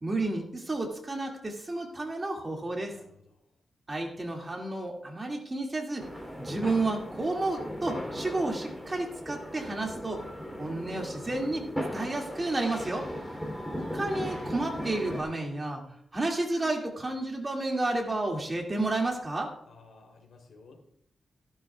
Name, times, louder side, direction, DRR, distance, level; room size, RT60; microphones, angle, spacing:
voice 1, 0.0-3.0 3.9-6.1 6.4-10.2 10.6-13.1 13.8-15.8 16.1-19.5, right 2 dB, 25° right, 1 dB, 2.2 m, -31 dB
sound 1, 6.0-15.2, equal, 5° left, 3.1 m, -37 dB
voice 2, 19.6-20.9, left 3 dB, 75° left, 2 dB, 3.2 m, -54 dB
15.5 x 12.0 x 2.3 m, 0.69 s
wide cardioid pair, 115°, 0 cm